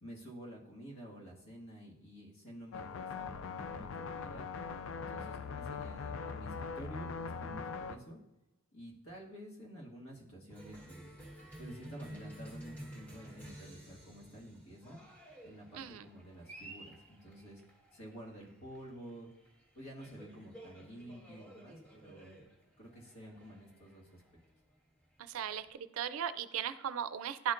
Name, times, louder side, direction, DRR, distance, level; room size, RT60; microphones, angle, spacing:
voice 1, 0.0-4.5 4.9-8.2 8.7-11.1 11.6-15.0 15.4-17.6 17.9-19.3 19.8-22.5 22.8-24.2, equal, 85° left, -3 dB, 1.7 m, -50 dB
sound 1, 2.7-8.0, left 5 dB, 65° left, 0.3 m, -41 dB
Cheering, 10.5-25.7, right 1 dB, 10° left, 1.2 m, -53 dB
voice 2, 15.7-16.0 25.2-27.5, right 9 dB, 80° right, 13 dB, 0.4 m, -37 dB
11.5 x 4.4 x 2.5 m, 0.98 s
head